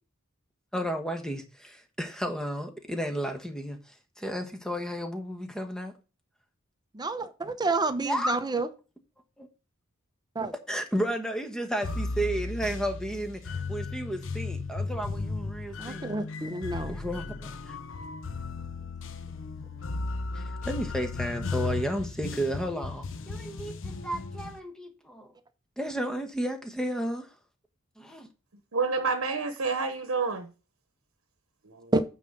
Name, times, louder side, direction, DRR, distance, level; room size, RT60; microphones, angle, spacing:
voice 1, 0.7-5.9 8.0-8.4 9.4-9.5 10.7-16.1 16.7-17.8 20.3-25.3 25.8-27.3 28.0-28.3, equal, 5° left, 1.1 m, -33 dB
voice 2, 6.9-8.7 10.4-10.5 15.8-17.0 31.9-32.0, right 3 dB, 20° right, 0.7 m, -29 dB
sound 1, 11.8-24.6, left 3 dB, 60° left, 0.8 m, -35 dB
voice 3, 28.7-30.5 31.6-31.9, right 4 dB, 70° right, 1.0 m, -29 dB
9.1 x 3.9 x 6.7 m
head